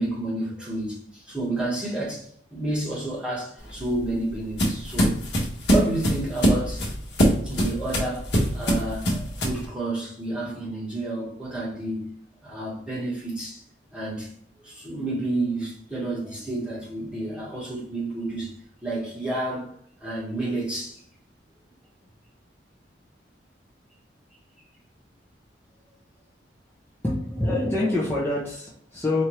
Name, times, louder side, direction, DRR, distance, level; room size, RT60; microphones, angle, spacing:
voice 1, 0.0-5.2 5.7-6.9 7.4-12.1 12.4-13.6 13.9-14.3 14.6-21.0, right 2 dB, 5° right, 1.3 m, -30 dB
sound 1, 3.6-9.7, equal, 70° left, 1.2 m, -23 dB
voice 2, 27.0-29.2, left 2 dB, 10° left, 0.7 m, -26 dB
4.4 x 2.6 x 3.1 m
head